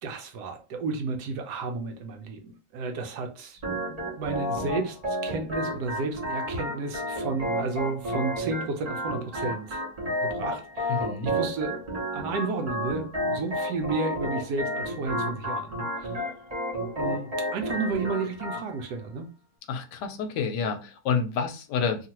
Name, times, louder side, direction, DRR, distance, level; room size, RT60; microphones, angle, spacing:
voice 1, 0.0-3.6 3.9-9.8 10.2-11.7 12.1-16.3 17.0-19.3, right 4 dB, 70° right, 1.1 m, -32 dB
Organ, 3.6-18.6, equal, 35° right, 0.6 m, -31 dB
voice 2, 10.9-11.3 19.7-22.1, left 5 dB, 75° left, 1.1 m, -29 dB
2.9 x 2.4 x 2.8 m
omnidirectional pair, 1.9 m